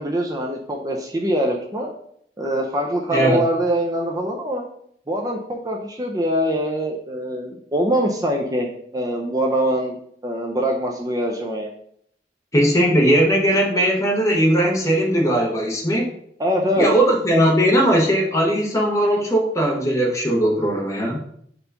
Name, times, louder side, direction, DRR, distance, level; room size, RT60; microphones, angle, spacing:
voice 1, 0.0-1.9 2.4-4.7 5.1-10.0 10.2-11.7 16.4-16.9, equal, 20° right, 1 dB, 0.6 m, -23 dB
voice 2, 3.1-3.4 12.5-16.1 16.8-21.2, right 1 dB, 20° left, 0 dB, 1.1 m, -18 dB
4.4 x 4.0 x 5.5 m, 0.68 s
head